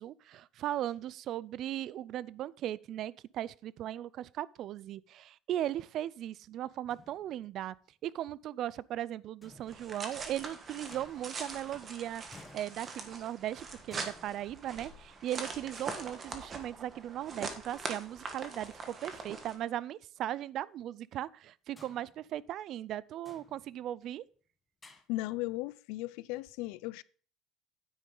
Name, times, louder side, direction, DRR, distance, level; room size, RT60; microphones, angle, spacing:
voice 1, 0.0-7.8 8.0-24.2, right 12 dB, 45° right, 0.3 m, -38 dB
sound 1, 6.9-7.7 9.4-10.4 10.9-11.8 12.3-13.4 13.9-15.2 16.5-16.6 18.1-18.8 19.1-19.2 19.6-19.7 21.8-22.9 23.2-24.1 24.8-25.0, left 3 dB, 15° left, 1.0 m, -58 dB
sound 2, 9.7-19.5, right 4 dB, 25° right, 1.3 m, -43 dB
voice 2, 25.1-27.0, left 18 dB, 90° left, 0.4 m, -36 dB
9.4 x 8.9 x 3.9 m
cardioid pair, 170°, 0 cm